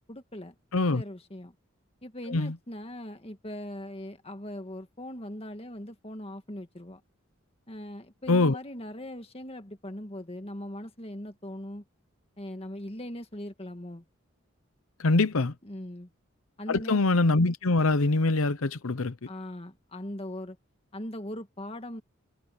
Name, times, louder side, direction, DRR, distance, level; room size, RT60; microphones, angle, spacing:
voice 1, 0.1-1.6 2.0-7.0 7.7-11.8 12.4-14.1 15.6-16.1 16.6-17.0 19.3-20.6 20.9-22.0, left 1 dB, 30° left, 1.8 m, -40 dB
voice 2, 0.7-1.0 2.3-2.5 8.3-8.6 15.0-15.5 16.7-19.3, left 2 dB, 85° left, 0.9 m, -24 dB
head